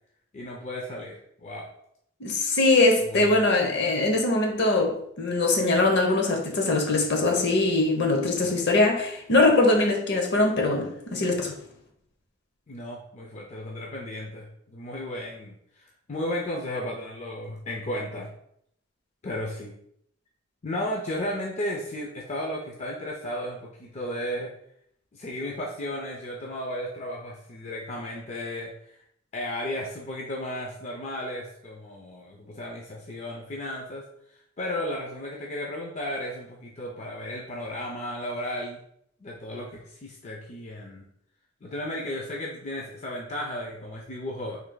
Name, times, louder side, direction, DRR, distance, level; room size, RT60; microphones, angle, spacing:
voice 1, 0.3-1.7 3.0-3.7 12.7-18.3 19.2-19.8 20.6-24.5 25.1-29.0 29.3-38.8 39.2-41.0 41.6-44.6, left 1 dB, 35° left, -1 dB, 0.5 m, -34 dB
voice 2, 2.2-11.6, left 2 dB, 60° left, 2 dB, 0.8 m, -22 dB
3.2 x 2.7 x 3.9 m, 0.71 s
head